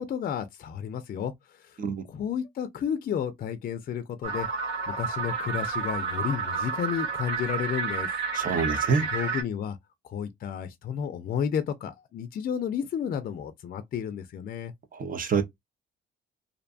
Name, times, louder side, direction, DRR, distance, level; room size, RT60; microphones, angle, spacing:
voice 1, 0.0-1.8 2.1-4.5 4.9-8.1 9.0-9.8 10.0-14.7, left 8 dB, 45° left, 0.4 m, -32 dB
sound 1, 4.2-9.4, right 5 dB, 75° right, 1.7 m, -30 dB
voice 2, 8.3-9.0 14.9-15.4, right 5 dB, 45° right, 0.6 m, -26 dB
2.6 x 2.2 x 2.5 m
cardioid pair, 90°, 20 cm